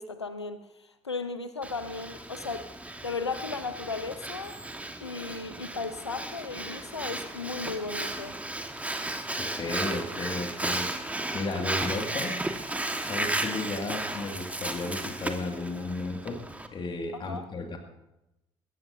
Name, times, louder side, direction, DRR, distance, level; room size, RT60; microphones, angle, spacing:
voice 1, 0.0-2.7 3.0-4.6 5.0-8.4 17.1-17.5, left 4 dB, 85° left, 11 dB, 0.8 m, -36 dB
Breathing, 1.6-16.7, right 1 dB, 10° right, 1.5 m, -34 dB
voice 2, 9.4-12.4 13.0-16.4 16.7-17.8, left 3 dB, 35° left, 3 dB, 2.1 m, -34 dB
21.5 x 17.0 x 2.7 m, 0.93 s
figure-of-eight pair, 50°, 14 cm